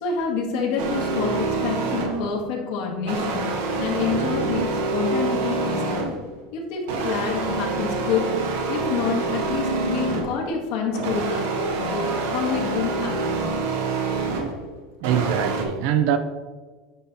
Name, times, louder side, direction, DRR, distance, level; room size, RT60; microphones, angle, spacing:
voice 1, 0.0-3.5 3.8-6.0 6.5-8.3 8.7-11.4 11.8-13.4, left 5 dB, 75° left, 1.7 m, -27 dB
sound 1, 0.8-2.3 3.1-6.3 6.9-10.4 10.9-14.6 15.0-15.6, right 3 dB, 85° right, 1.3 m, -26 dB
voice 2, 15.0-16.2, right 10 dB, 70° right, 0.5 m, -23 dB
9.1 x 4.3 x 4.1 m
supercardioid pair, 135°, 0 cm